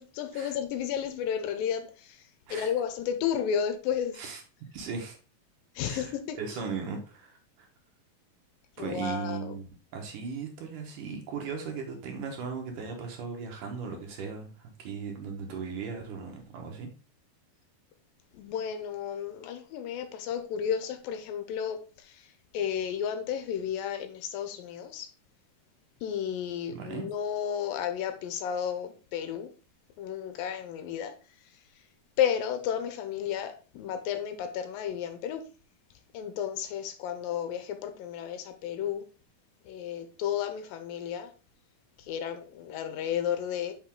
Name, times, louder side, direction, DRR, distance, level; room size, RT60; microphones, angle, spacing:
voice 1, 0.0-2.2 2.5-4.1 5.8-6.4 8.8-9.6 18.3-22.3 22.5-25.1 26.0-29.5 30.0-31.1 32.2-35.4 36.1-39.1 39.7-41.3 42.0-43.7, left 8 dB, 80° left, 2.4 m, -32 dB
voice 2, 4.7-5.2 5.8-6.1 6.4-7.7 8.8-16.9 26.7-27.1, right 5 dB, 65° right, 2.6 m, -37 dB
5.9 x 5.7 x 3.7 m
omnidirectional pair, 4.2 m